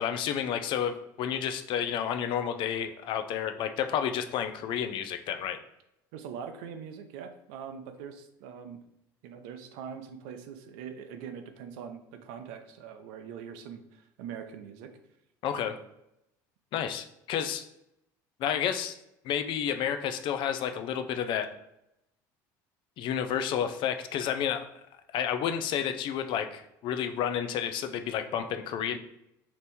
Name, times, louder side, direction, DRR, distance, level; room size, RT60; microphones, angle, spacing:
voice 1, 0.0-5.6 15.4-15.8 16.7-17.6 18.4-18.9 19.2-21.5 23.0-24.7 25.1-29.0, left 9 dB, 55° left, 8 dB, 0.4 m, -30 dB
voice 2, 6.1-8.8 9.2-14.9, right 7 dB, 75° right, 7 dB, 0.5 m, -42 dB
2.9 x 2.6 x 3.5 m, 0.83 s
supercardioid pair, 90°, 10 cm